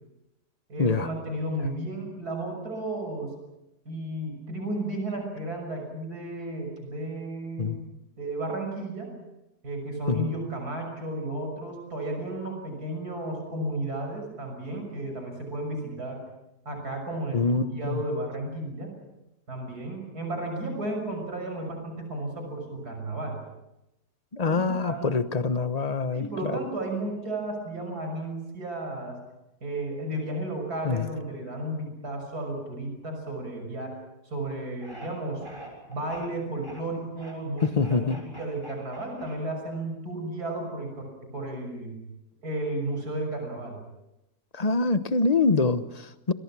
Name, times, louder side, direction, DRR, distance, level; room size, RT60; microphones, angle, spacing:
voice 1, 0.7-3.3 3.8-7.8 8.2-9.1 9.6-16.2 16.6-18.9 19.5-23.4 24.4-25.1 26.1-29.2 29.6-33.9 34.2-35.5 35.9-42.0 42.4-43.8, right 1 dB, 70° right, 3 dB, 6.8 m, -33 dB
voice 2, 17.3-18.0 24.3-26.6 30.8-31.1 37.6-38.2 44.5-46.3, left 4 dB, 30° left, 11 dB, 1.0 m, -25 dB
sound 1, 34.8-35.1 35.4-36.3 36.6-36.8 37.1-39.7, right 1 dB, 15° right, 7.0 m, -45 dB
28.5 x 23.0 x 6.2 m, 0.92 s
omnidirectional pair, 1.7 m